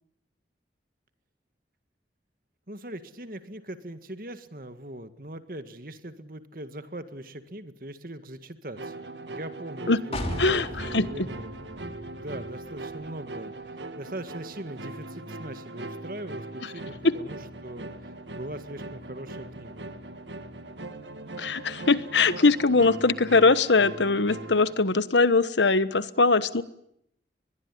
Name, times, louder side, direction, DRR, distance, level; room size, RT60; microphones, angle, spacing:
voice 1, 2.7-19.9, right 1 dB, 50° right, 10 dB, 1.9 m, -41 dB
sound 1, 8.8-24.7, right 2 dB, 85° right, 2.1 m, -40 dB
sound 2, 10.1-13.9 14.2-14.3, left 1 dB, 35° left, 3.0 m, -37 dB
voice 2, 10.4-11.3 16.6-16.7 17.0-17.1 21.4-26.6, left 3 dB, 85° left, 14 dB, 1.2 m, -22 dB
22.0 x 21.5 x 10.0 m, 0.76 s
head